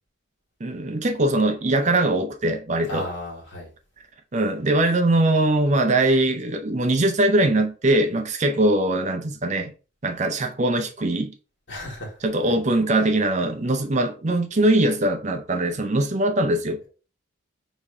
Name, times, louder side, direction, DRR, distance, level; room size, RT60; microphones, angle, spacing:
voice 1, 0.6-3.1 4.3-9.7 10.0-11.3 12.2-16.8, right 1 dB, 35° right, 0.6 m, -21 dB
voice 2, 2.9-3.7 11.7-12.5, left 1 dB, 60° left, 2.1 m, -35 dB
5.1 x 3.6 x 2.7 m
head